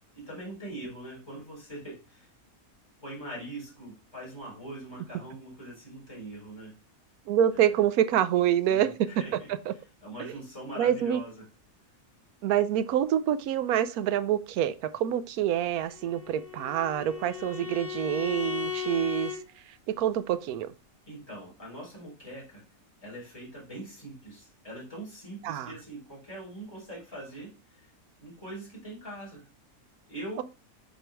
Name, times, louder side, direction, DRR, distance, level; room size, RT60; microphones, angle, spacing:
voice 1, 0.1-2.3 3.0-6.7 7.5-7.8 8.7-9.5 10.0-11.4 21.1-22.6 23.0-27.5 28.2-29.4 30.1-30.4, right 1 dB, 15° left, 4.4 m, -42 dB
voice 2, 7.3-9.4 9.7-9.8 10.2-10.3 10.8-11.2 12.4-19.3 19.9-20.7 25.4-25.7, right 10 dB, 90° right, 1.1 m, -26 dB
Bowed string instrument, 15.9-19.4, left 8 dB, 35° left, 3.6 m, -36 dB
7.7 x 4.5 x 3.4 m
omnidirectional pair, 1.5 m